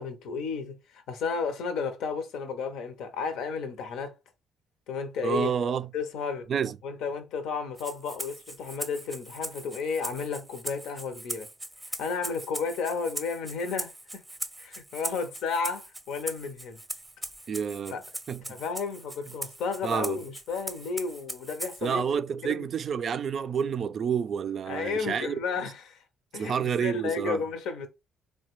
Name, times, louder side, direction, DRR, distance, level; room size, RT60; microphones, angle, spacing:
voice 1, 0.0-4.1 4.9-5.5 5.9-6.5 6.8-11.5 12.0-13.9 14.6-16.8 17.9-18.0 18.4-22.0 22.4-22.7 24.7-26.0 26.3-27.9, left 5 dB, 75° left, 0.6 m, -32 dB
voice 2, 5.2-5.9 6.5-6.8 17.5-18.0 18.3-18.4 19.8-20.2 21.8-25.3 26.3-27.4, right 7 dB, 55° right, 0.3 m, -29 dB
Rattle (instrument), 7.8-21.9, right 1 dB, 10° right, 0.6 m, -40 dB
3.2 x 2.2 x 3.0 m
supercardioid pair, 60°, 0 cm